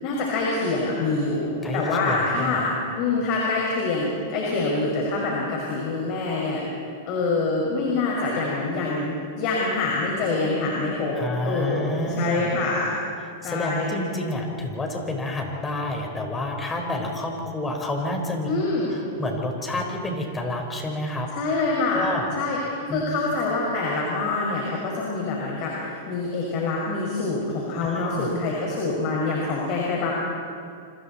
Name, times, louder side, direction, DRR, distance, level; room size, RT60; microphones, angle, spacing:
voice 1, 0.0-2.7 3.0-6.6 7.1-9.1 9.4-11.2 11.4-12.9 13.4-13.9 18.4-18.9 21.3-22.1 22.4-22.6 22.9-30.1, left 3 dB, 45° left, -3 dB, 5.6 m, -25 dB
voice 2, 1.6-2.7 11.2-12.5 13.4-18.5 18.9-21.3 21.9-22.3 22.9-23.0 27.9-28.3, left 1 dB, 15° left, 2 dB, 4.4 m, -29 dB
28.5 x 26.0 x 4.3 m, 2.3 s
hypercardioid pair, 125°, 0 cm